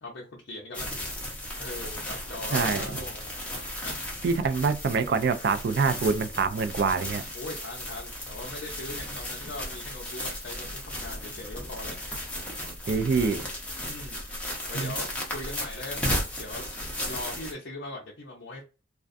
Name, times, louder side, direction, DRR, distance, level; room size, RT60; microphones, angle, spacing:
voice 1, 0.0-0.9 1.6-3.4 3.8-4.0 7.3-11.9 13.8-14.2 14.7-18.6, left 2 dB, 60° left, 0.5 m, -40 dB
sound 1, 0.7-17.5, left 1 dB, 5° left, 0.6 m, -35 dB
voice 2, 2.5-2.8 4.2-7.2 12.9-13.4 14.8-14.9, right 5 dB, 55° right, 0.3 m, -25 dB
2.4 x 2.2 x 2.5 m
head